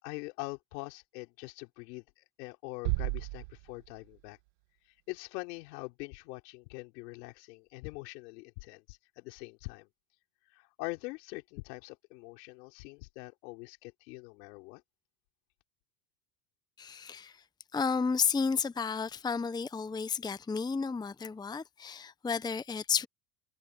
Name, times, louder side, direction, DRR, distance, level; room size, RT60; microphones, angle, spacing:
voice 1, 0.0-2.0 2.4-4.4 5.1-9.9 10.5-14.8, left 25 dB, 80° left, 4.3 m, -43 dB
sound 1, 2.8-4.8, right 23 dB, 75° right, 1.6 m, -35 dB
voice 2, 16.8-17.4 17.7-23.1, left 5 dB, 10° left, 0.8 m, -32 dB
supercardioid pair, 105°, 48 cm